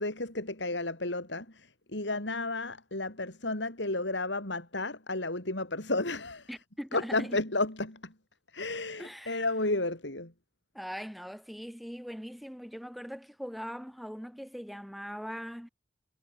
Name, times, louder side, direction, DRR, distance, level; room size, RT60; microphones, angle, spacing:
voice 1, 0.0-6.5 6.9-8.1 8.5-10.3, left 2 dB, 80° left, 5.1 m, -32 dB
voice 2, 6.5-7.4 9.0-9.4 10.7-15.7, equal, ahead, 4.9 m, -41 dB
head